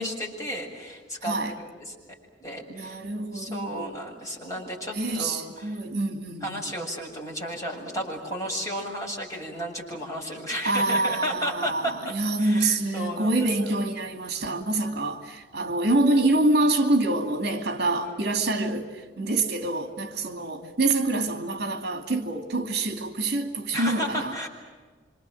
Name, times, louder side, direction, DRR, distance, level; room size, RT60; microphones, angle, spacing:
voice 1, 0.0-3.0 3.3-5.8 6.4-13.8 20.4-20.8 23.7-24.5, equal, 20° left, 7.4 m, -34 dB
voice 2, 1.2-1.5 2.7-3.9 4.9-6.6 10.6-24.3, right 2 dB, 60° right, 2.5 m, -26 dB
27.5 x 26.5 x 7.8 m
head